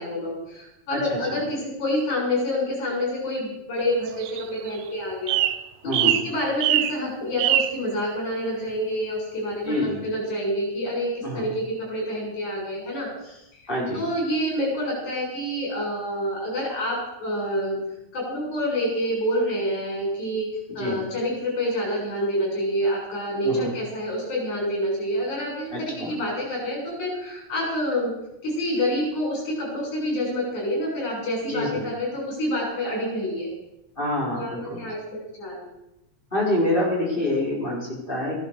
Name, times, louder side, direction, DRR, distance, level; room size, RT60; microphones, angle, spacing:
voice 1, 0.0-5.4 5.8-17.8 18.1-20.5 20.7-28.1 28.4-33.5 34.3-34.5 34.8-35.6, equal, 85° left, -2 dB, 8.4 m, -27 dB
voice 2, 0.9-1.4 5.8-6.1 9.6-10.0 11.2-11.4 13.7-14.0 20.7-21.0 23.4-23.7 25.7-26.1 31.5-31.8 34.0-34.9 36.3-38.4, left 1 dB, 15° left, -3 dB, 4.9 m, -26 dB
sound 1, 4.1-4.8 5.3-5.6 5.9-6.3 6.6-7.0 7.4-7.8, right 13 dB, 75° right, 1.6 m, -22 dB
15.0 x 12.5 x 6.8 m, 0.87 s
omnidirectional pair, 3.3 m